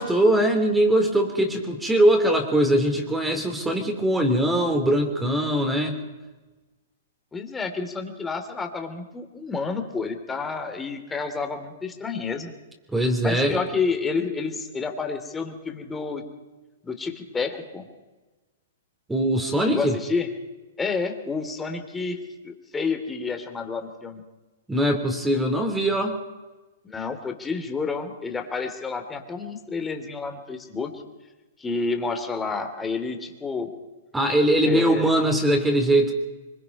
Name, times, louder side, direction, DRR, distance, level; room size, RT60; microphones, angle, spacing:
voice 1, 0.0-6.0 12.9-13.6 19.1-19.9 24.7-26.1 34.1-36.1, right 1 dB, 5° right, 4 dB, 3.2 m, -21 dB
voice 2, 7.3-12.5 13.2-16.2 16.8-17.9 19.6-20.3 20.8-24.2 26.8-30.9 31.6-33.7 34.6-35.1, left 4 dB, 15° left, 5 dB, 2.9 m, -29 dB
24.0 x 22.5 x 5.4 m, 1.2 s
hypercardioid pair, 120°, 0 cm